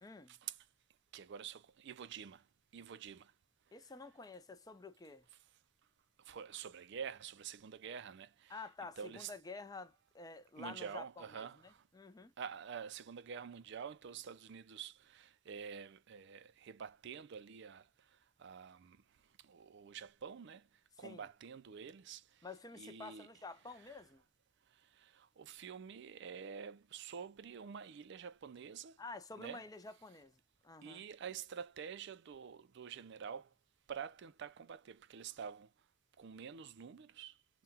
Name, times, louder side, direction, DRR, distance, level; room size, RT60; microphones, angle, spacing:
voice 1, 0.0-0.3 3.7-5.2 8.5-12.3 21.0-21.3 22.4-24.2 29.0-31.0, left 3 dB, 20° left, 0.5 m, -50 dB
voice 2, 1.1-2.4 2.7-3.3 6.3-8.6 9.0-9.3 10.6-11.8 12.4-17.8 18.4-19.0 19.4-20.6 21.0-22.2 22.7-23.3 25.0-29.0 29.4-29.6 30.8-33.5 33.9-35.7 36.2-37.3, right 7 dB, 60° right, 0.4 m, -48 dB
5.5 x 2.3 x 2.7 m
head